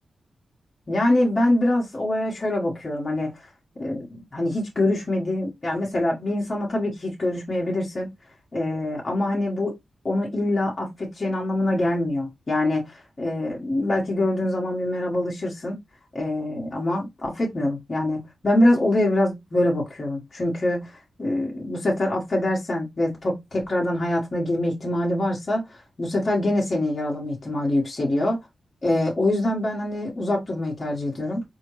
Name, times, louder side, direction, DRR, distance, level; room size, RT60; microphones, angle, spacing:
voice 1, 0.9-3.5 3.8-8.1 8.5-9.7 10.0-15.8 16.1-28.4 28.8-31.4, left 1 dB, 40° left, 1.3 m, -24 dB
4.2 x 2.8 x 3.1 m
cardioid pair, 75°, 0 cm